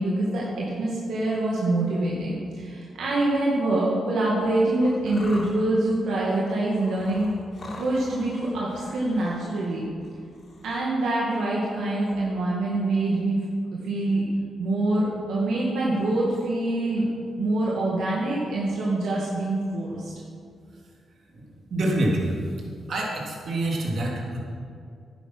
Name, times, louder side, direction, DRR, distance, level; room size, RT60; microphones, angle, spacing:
voice 1, 0.0-7.3 7.8-9.8 10.6-13.4 13.8-14.3 14.6-17.1 17.4-20.1, right 2 dB, 85° right, -5 dB, 2.2 m, -25 dB
sound 1, 4.8-10.8, left 2 dB, 50° left, 3.4 m, -44 dB
voice 2, 21.3-22.5 22.9-24.4, right 1 dB, 60° right, -2 dB, 3.2 m, -27 dB
11.0 x 10.5 x 6.2 m, 2.3 s
cardioid pair, 80°, 0 cm